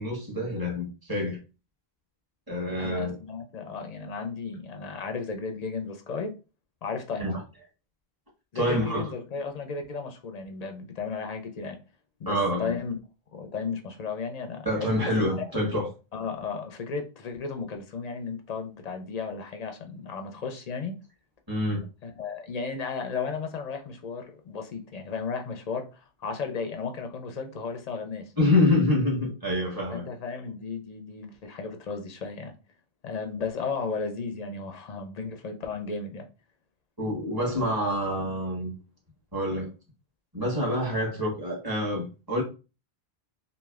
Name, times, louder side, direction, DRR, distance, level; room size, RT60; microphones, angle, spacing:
voice 1, 0.0-1.4 2.5-3.1 7.2-7.4 8.5-9.0 12.3-12.7 14.6-15.9 21.5-21.8 28.4-30.0 37.0-38.7 39.3-39.7 40.3-42.4, left 1 dB, 20° right, 1.2 m, -26 dB
voice 2, 2.7-6.3 6.8-7.3 8.5-11.8 12.2-13.0 13.3-15.5 16.1-21.0 22.0-28.3 29.9-32.5 33.0-36.3 37.4-37.6, left 5 dB, 50° left, 0.5 m, -34 dB
3.1 x 2.5 x 2.3 m
omnidirectional pair, 1.1 m